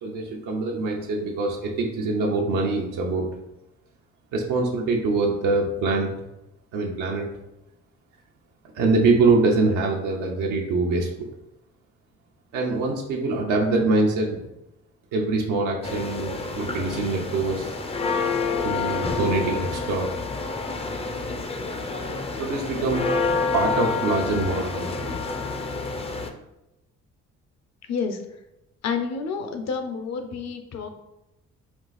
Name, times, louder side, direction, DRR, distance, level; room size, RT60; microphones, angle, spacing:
voice 1, 0.0-3.3 4.3-6.1 6.7-7.3 8.7-11.3 12.5-14.4 15.1-17.8 18.6-20.1 22.4-23.1 23.5-25.2, right 3 dB, 90° right, -2 dB, 0.7 m, -24 dB
sound 1, 15.8-26.3, left 4 dB, 20° left, 0.4 m, -28 dB
voice 2, 28.8-30.9, left 5 dB, 60° left, 6 dB, 0.7 m, -29 dB
4.5 x 2.4 x 4.0 m, 0.90 s
cardioid pair, 90°, 30 cm